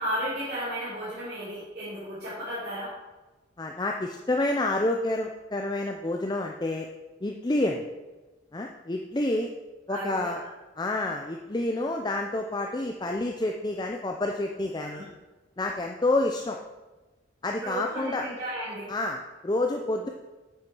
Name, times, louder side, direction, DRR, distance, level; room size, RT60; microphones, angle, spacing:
voice 1, 0.0-3.0 9.9-10.5 14.8-15.1 17.6-18.9, equal, 55° right, -11 dB, 3.2 m, -34 dB
voice 2, 3.6-6.9 7.2-7.8 8.5-9.5 9.9-10.4 10.8-15.0 15.6-16.6 17.4-18.3 18.9-20.1, left 2 dB, 20° left, 2 dB, 0.5 m, -28 dB
9.1 x 6.0 x 6.1 m, 1.2 s
head